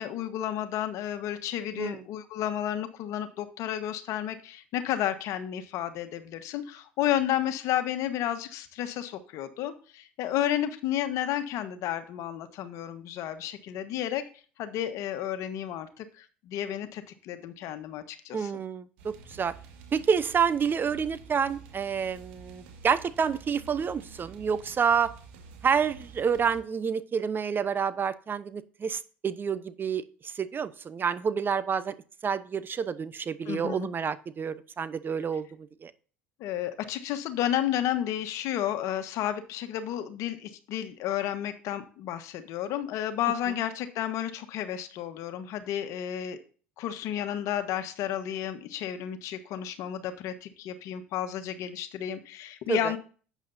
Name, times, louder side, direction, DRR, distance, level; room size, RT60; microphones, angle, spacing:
voice 1, 0.0-14.2 14.6-18.5 33.4-33.9 36.4-46.4 46.8-53.0, left 11 dB, 60° left, 9 dB, 1.4 m, -32 dB
voice 2, 18.3-19.5 19.9-25.1 25.6-31.9 32.2-35.9 52.7-52.9, right 6 dB, 35° right, 14 dB, 0.9 m, -28 dB
sound 1, 19.0-26.6, right 5 dB, 75° right, 1.9 m, -49 dB
11.5 x 8.4 x 2.7 m, 0.39 s
hypercardioid pair, 70°, 6 cm